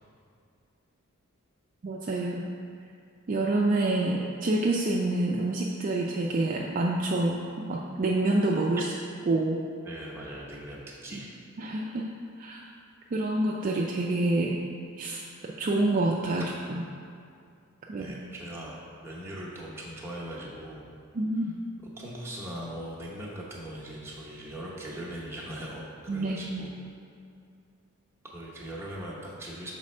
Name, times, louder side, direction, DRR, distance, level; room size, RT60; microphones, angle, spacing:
voice 1, 1.8-2.5 3.3-8.8 9.3-9.6 11.1-11.2 11.6-12.1 12.4-12.6 13.1-14.6 15.0-16.8 17.9-18.1 21.1-21.5 26.1-26.7, right 2 dB, 40° right, -2 dB, 0.4 m, -27 dB
voice 2, 9.8-11.4 17.9-20.9 22.0-26.8 28.2-29.7, right 1 dB, 10° right, -5 dB, 0.9 m, -40 dB
6.1 x 4.2 x 4.3 m, 2.4 s
head